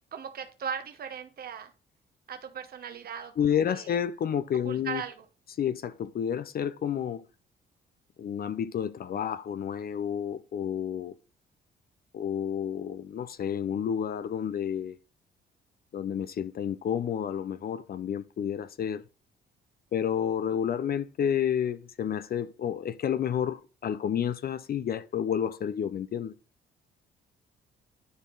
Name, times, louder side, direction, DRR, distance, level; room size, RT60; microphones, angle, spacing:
voice 1, 0.1-1.7 2.3-3.9 4.6-5.2, right 7 dB, 50° right, 1.0 m, -38 dB
voice 2, 3.4-5.0 5.6-7.2 8.2-11.1 12.1-15.0 15.9-19.0 19.9-26.3, left 8 dB, 50° left, 0.5 m, -30 dB
10.0 x 4.5 x 3.8 m
cardioid pair, 90°, 20 cm